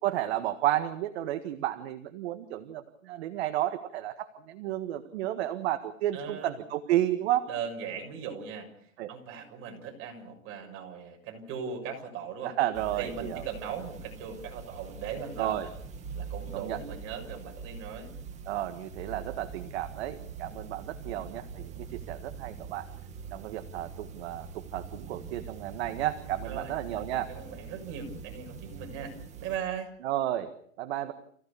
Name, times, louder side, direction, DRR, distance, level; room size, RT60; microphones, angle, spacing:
voice 1, 0.0-7.5 9.0-9.1 12.4-13.4 15.4-15.7 16.5-16.8 18.5-22.9 23.3-27.3 30.0-31.1, right 13 dB, 50° right, 8 dB, 1.7 m, -32 dB
voice 2, 6.1-6.5 7.5-12.5 12.9-15.6 16.1-18.1 26.4-29.9, right 7 dB, 30° right, 2 dB, 6.6 m, -39 dB
sound 1, 12.7-29.6, right 5 dB, 15° right, 2.2 m, -43 dB
29.5 x 16.5 x 6.9 m, 0.65 s
hypercardioid pair, 150°, 40 cm